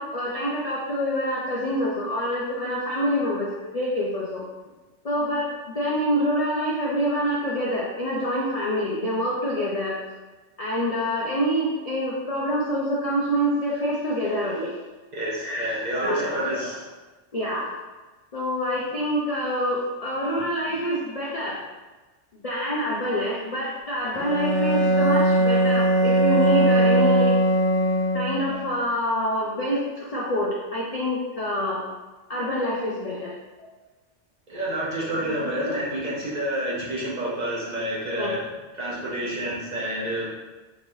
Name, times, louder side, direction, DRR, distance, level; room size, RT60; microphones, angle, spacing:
voice 1, 0.0-4.4 5.0-10.0 10.6-14.7 15.4-15.7 16.0-16.7 17.3-17.7 18.3-21.6 22.4-27.3 28.1-31.8 32.3-33.3 35.1-35.8 38.2-38.3, equal, 50° left, -5 dB, 0.4 m, -26 dB
voice 2, 15.1-16.8 34.5-38.4 38.7-40.3, right 1 dB, 40° right, -6 dB, 0.8 m, -29 dB
Bowed string instrument, 24.1-28.6, right 1 dB, 85° left, 0.9 m, -20 dB
4.0 x 3.1 x 2.6 m, 1.2 s
omnidirectional pair, 1.2 m